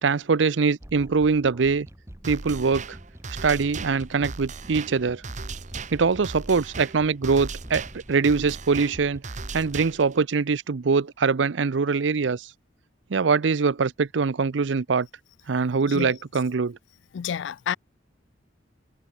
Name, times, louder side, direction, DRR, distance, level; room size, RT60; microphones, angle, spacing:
voice 1, 0.0-1.9 2.2-3.0 3.4-5.2 5.9-9.2 9.5-12.5 13.1-15.1 15.5-16.8, right 5 dB, 80° right, 0.6 m, -23 dB
sound 1, 0.8-9.2, equal, 15° right, 1.9 m, -46 dB
sound 2, 2.2-10.2, right 4 dB, 40° right, 1.1 m, -38 dB
voice 2, 17.1-17.8, left 8 dB, 75° left, 0.4 m, -29 dB
head